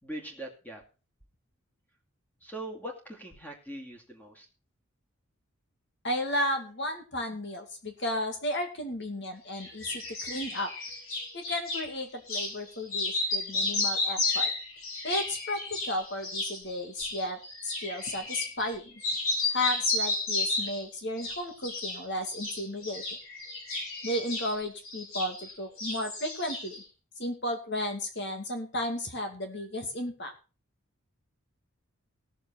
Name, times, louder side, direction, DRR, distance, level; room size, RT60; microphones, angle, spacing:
voice 1, 0.0-0.8 2.4-4.5, right 1 dB, 10° left, 1 dB, 2.4 m, -41 dB
voice 2, 6.0-10.7 11.3-14.5 15.0-18.9 19.5-23.0 24.0-26.8 27.2-30.3, left 1 dB, 50° left, 4 dB, 2.5 m, -33 dB
sound 1, 9.5-11.8 12.3-12.5 12.8-18.7 19.0-20.8 21.2-22.0 22.3-25.5 25.8-26.8, left 2 dB, 75° left, 4.8 m, -32 dB
17.0 x 7.2 x 4.4 m, 0.34 s
head